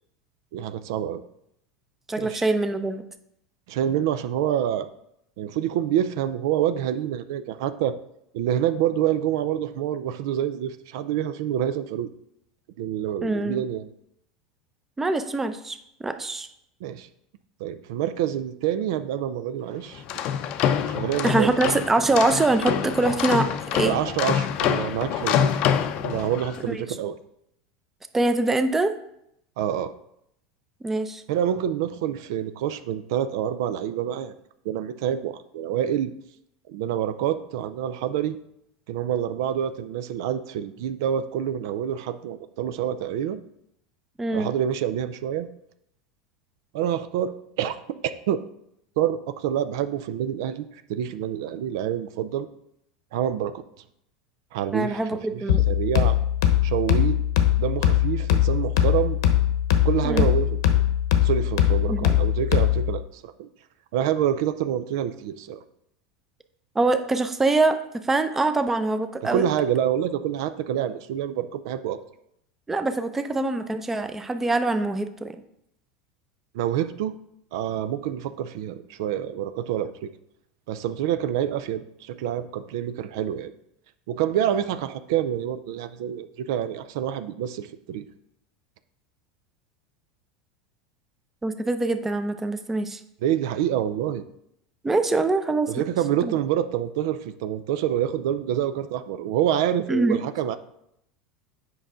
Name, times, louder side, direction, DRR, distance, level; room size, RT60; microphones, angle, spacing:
voice 1, 0.5-1.2 2.2-2.4 3.7-4.9 5.4-7.9 8.3-12.1 12.8-13.9 16.8-17.1 17.6-20.2 20.9-21.5 23.8-25.5 26.0-27.2 29.6-29.9 31.3-34.3 34.6-36.1 36.7-38.4 38.9-43.4 44.3-45.5 46.7-47.3 47.6-47.8 48.3-48.4 49.0-52.5 53.1-53.6 54.5-55.0 55.3-56.2 56.6-57.2 57.6-59.2 59.8-60.6 61.2-63.5 63.9-65.6 69.2-72.0 76.5-77.1 77.5-80.1 80.7-83.5 84.1-88.0 93.2-94.2 95.7-100.6, right 10 dB, 70° right, 11 dB, 0.5 m, -27 dB
voice 2, 2.1-3.1 13.2-13.6 15.0-16.5 21.2-23.9 26.7-26.8 28.1-28.9 30.8-31.2 44.2-44.5 54.7-55.6 60.0-60.3 61.9-62.2 66.7-69.5 72.7-75.4 91.4-93.0 94.8-95.7 96.2-96.3 99.9-100.2, right 2 dB, 15° right, 9 dB, 0.6 m, -24 dB
sound 1, 19.9-26.6, left 9 dB, 50° left, 0.6 m, -26 dB
sound 2, 55.5-63.0, left 11 dB, 80° left, 0.9 m, -21 dB
7.9 x 5.5 x 3.7 m, 0.75 s
supercardioid pair, 110°, 2 cm